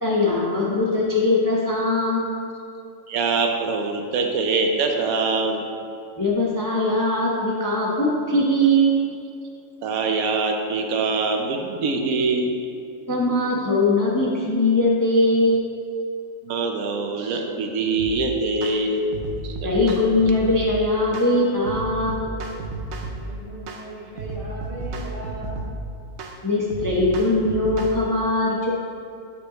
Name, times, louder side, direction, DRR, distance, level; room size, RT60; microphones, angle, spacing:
voice 1, 0.0-2.3 6.2-9.0 13.1-15.7 19.6-22.3 26.4-28.7, left 1 dB, 20° left, -5 dB, 0.6 m, -21 dB
voice 2, 3.1-5.7 9.8-12.6 16.4-19.0 19.4-19.7, right 3 dB, 85° right, 3 dB, 1.1 m, -24 dB
sound 1, 18.0-18.2 18.6-18.8 19.1-20.7 21.1-21.3 21.7-23.3 23.7-23.9 24.2-25.8 26.2-26.4 26.7-28.0, right 3 dB, 60° right, 0.8 m, -33 dB
voice 3, 23.1-25.7, right 1 dB, 25° right, -5 dB, 1.2 m, -37 dB
8.2 x 5.4 x 3.0 m, 2.4 s
omnidirectional pair, 1.5 m